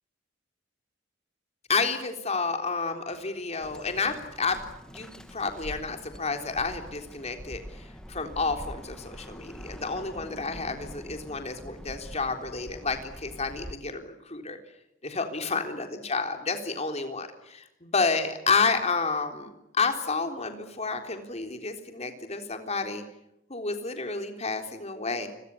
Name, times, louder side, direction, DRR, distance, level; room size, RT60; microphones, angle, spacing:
voice 1, 1.7-14.6 15.0-23.0 23.5-25.3, left 4 dB, 35° left, 5 dB, 3.7 m, -30 dB
Bird, 3.6-13.7, equal, 5° left, 1.7 m, -44 dB
29.0 x 23.0 x 8.5 m, 0.85 s
head